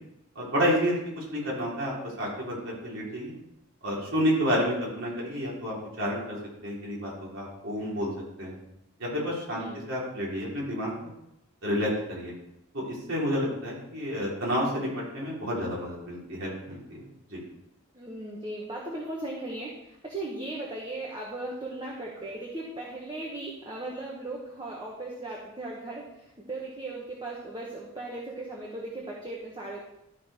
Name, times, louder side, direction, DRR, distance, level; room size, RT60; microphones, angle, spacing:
voice 1, 0.4-3.3 3.8-6.4 6.6-8.1 8.4-8.6 9.0-10.9 11.6-12.3 12.7-17.0 17.3-17.4, equal, 65° right, -5 dB, 3.5 m, -30 dB
voice 2, 17.9-29.8, right 2 dB, 20° right, -3 dB, 1.3 m, -37 dB
12.5 x 4.7 x 5.0 m, 0.84 s
head